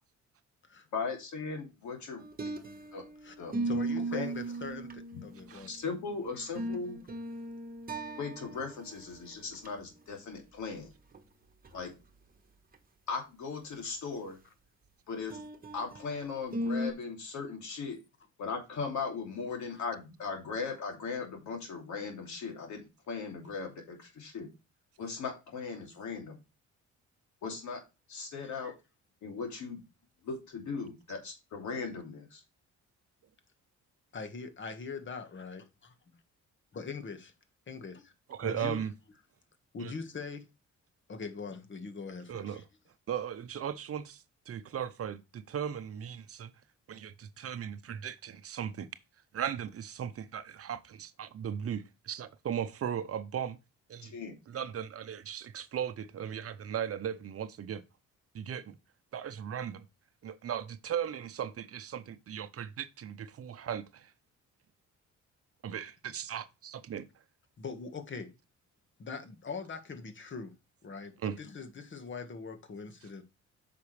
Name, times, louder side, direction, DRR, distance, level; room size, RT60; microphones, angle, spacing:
voice 1, 0.9-2.2 2.9-3.0 3.4-3.5 4.0-4.3 5.7-7.0 8.1-10.9 11.7-11.9 13.1-14.4 15.1-15.4 15.7-18.0 18.4-24.5 25.0-26.4 27.4-27.8 28.1-28.7 29.2-29.8 30.2-32.4 54.0-54.3, left 5 dB, 70° left, 2.7 m, -38 dB
sound 1, 2.2-3.1 3.5-5.7 6.3-8.8 9.1-9.2 9.5-9.7 11.1-11.2 11.7-11.8 15.3-16.0 16.5-16.9, right 2 dB, 30° right, 1.3 m, -36 dB
voice 2, 3.6-5.7 6.3-6.5 19.7-19.8 28.6-28.7 34.1-35.9 36.7-37.3 37.7-37.9 38.4-38.9 39.7-40.5 41.1-42.6 67.6-68.3 69.0-70.5 70.8-73.2, left 4 dB, 40° left, 1.6 m, -42 dB
voice 3, 38.4-38.9 39.8-39.9 42.3-42.6 43.1-46.5 46.9-48.9 49.3-53.6 53.9-54.1 54.5-57.8 58.3-58.7 59.1-59.9 60.2-64.1 65.6-67.1 71.2-71.4, right 9 dB, 50° right, 0.7 m, -37 dB
8.3 x 5.9 x 3.2 m
cardioid pair, 90°, 30 cm